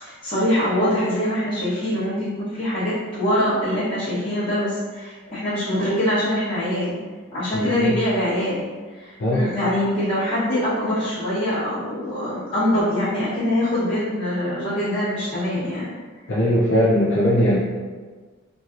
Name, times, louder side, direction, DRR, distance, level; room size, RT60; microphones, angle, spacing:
voice 1, 0.0-7.0 7.3-8.7 8.9-15.9, left 1 dB, 25° left, -15 dB, 1.2 m, -23 dB
voice 2, 7.5-7.9 9.2-9.5 16.3-17.6, equal, 50° left, -6 dB, 0.5 m, -20 dB
3.1 x 2.6 x 2.5 m, 1.4 s
head